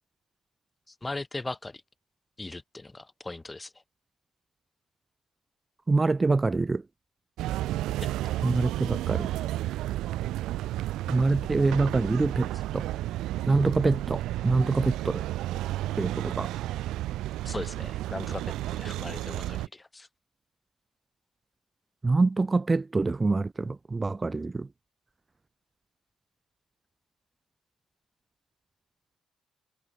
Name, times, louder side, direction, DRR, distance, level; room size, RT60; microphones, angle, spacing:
voice 1, 1.0-1.8 2.4-3.7 17.5-20.1, left 2 dB, 15° left, 0.7 m, -38 dB
voice 2, 5.9-6.8 8.4-9.3 11.1-12.9 13.5-15.2 16.0-16.5 22.0-24.7, right 3 dB, 25° right, 0.5 m, -25 dB
sound 1, 7.4-19.7, right 15 dB, 90° right, 1.2 m, -32 dB
cardioid pair, 90°, 0 cm